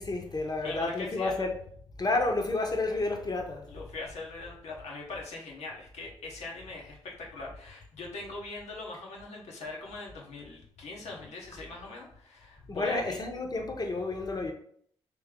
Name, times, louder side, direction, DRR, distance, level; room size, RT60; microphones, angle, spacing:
voice 1, 0.0-1.5 2.0-3.7 12.7-14.5, left 2 dB, 35° left, 1.0 m, -30 dB
voice 2, 0.6-1.4 3.7-13.2, left 3 dB, 70° left, 1.1 m, -41 dB
3.2 x 3.1 x 3.7 m
hypercardioid pair, 45°, 12 cm